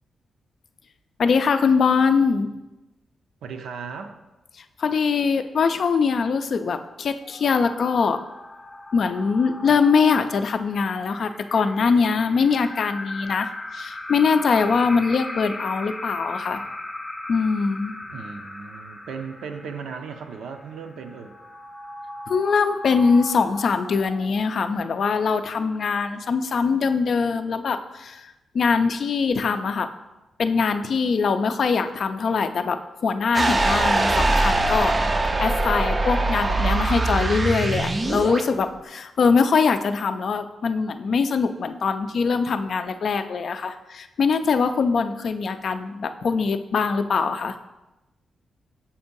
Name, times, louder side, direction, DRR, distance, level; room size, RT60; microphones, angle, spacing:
voice 1, 1.2-2.5 4.6-8.2 8.9-16.6 17.3-17.9 22.3-29.9 30.4-32.8 33.0-35.0 35.4-47.6, left 5 dB, 60° left, 9 dB, 0.4 m, -22 dB
voice 2, 3.4-4.2 18.1-21.3, right 5 dB, 90° right, 6 dB, 0.5 m, -36 dB
sound 1, 7.2-24.6, left 1 dB, 15° left, 0.6 m, -38 dB
sound 2, 33.3-38.4, right 2 dB, 25° right, 0.4 m, -22 dB
7.0 x 2.6 x 5.3 m, 1.0 s
cardioid pair, 110°, 0 cm